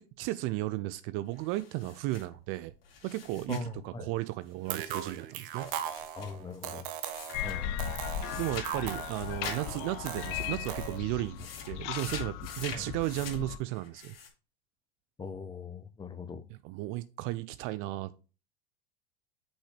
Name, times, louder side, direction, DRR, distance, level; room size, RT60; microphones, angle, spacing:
voice 1, 0.0-2.7 3.0-5.7 8.4-14.1 16.6-18.2, right 17 dB, 45° right, 0.5 m, -34 dB
sound 1, 1.3-3.7 4.6-7.7 8.2-9.6 9.9-10.9 11.2-14.3, left 5 dB, 75° left, 2.3 m, -45 dB
voice 2, 3.5-4.1 6.1-6.9 7.4-7.7 12.7-12.9 15.2-16.4, left 4 dB, 15° left, 0.8 m, -40 dB
sound 2, 4.7-11.0, right 10 dB, 60° right, 0.9 m, -39 dB
sound 3, 7.3-13.6, left 11 dB, 50° left, 0.7 m, -37 dB
5.9 x 5.5 x 3.2 m
hypercardioid pair, 90°, 29 cm